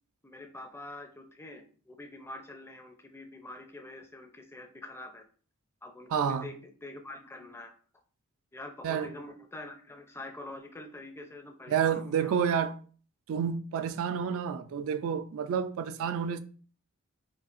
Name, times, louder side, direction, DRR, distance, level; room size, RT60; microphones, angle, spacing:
voice 1, 0.2-5.2 5.8-7.7 8.5-12.4, left 2 dB, 10° left, 0.5 m, -45 dB
voice 2, 6.1-6.5 8.8-9.1 11.7-12.8 13.3-16.4, right 7 dB, 70° right, 0.3 m, -29 dB
5.2 x 2.4 x 2.5 m
head